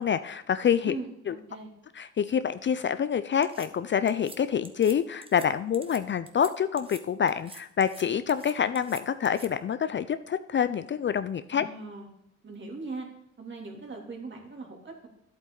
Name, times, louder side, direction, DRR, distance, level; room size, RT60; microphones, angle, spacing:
voice 1, 0.0-1.0 1.3-1.4 2.0-11.7, left 8 dB, 40° left, 13 dB, 0.5 m, -27 dB
voice 2, 0.8-1.7 11.5-12.1 12.4-13.1 13.4-15.1, right 3 dB, 40° right, 0 dB, 3.2 m, -40 dB
sound 1, 3.4-3.7 4.1-4.4 4.6-5.0 5.2-5.5 5.7-6.0 6.3-6.5 6.8-7.0 7.3-8.0 8.3-9.5, right 2 dB, 20° right, 1.3 m, -46 dB
11.0 x 8.3 x 3.9 m, 0.77 s
cardioid pair, 90°, 30 cm